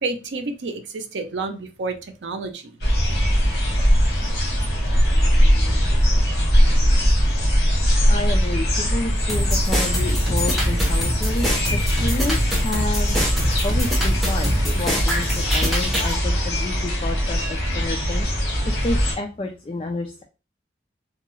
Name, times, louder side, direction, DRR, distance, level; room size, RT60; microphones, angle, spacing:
voice 1, 0.0-2.8, right 3 dB, 85° right, 6 dB, 0.6 m, -29 dB
sound 1, 2.8-19.1, equal, 65° left, 1.6 m, -20 dB
voice 2, 8.1-13.4 13.6-14.5 14.8-20.2, left 2 dB, 30° left, 4 dB, 0.3 m, -30 dB
sound 2, 9.3-16.1, equal, ahead, 0.7 m, -24 dB
3.8 x 2.3 x 3.0 m, 0.31 s
head